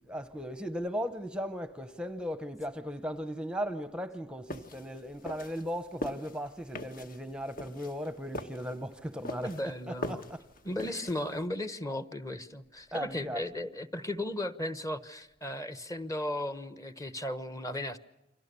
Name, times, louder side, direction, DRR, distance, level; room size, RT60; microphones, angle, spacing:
voice 1, 0.0-10.5 10.8-11.0 12.9-13.5, equal, 5° right, 0.9 m, -37 dB
sound 1, 4.5-11.4, left 1 dB, 50° left, 1.5 m, -42 dB
voice 2, 9.4-10.2 10.6-18.0, left 1 dB, 20° left, 1.1 m, -36 dB
29.5 x 24.5 x 6.9 m
head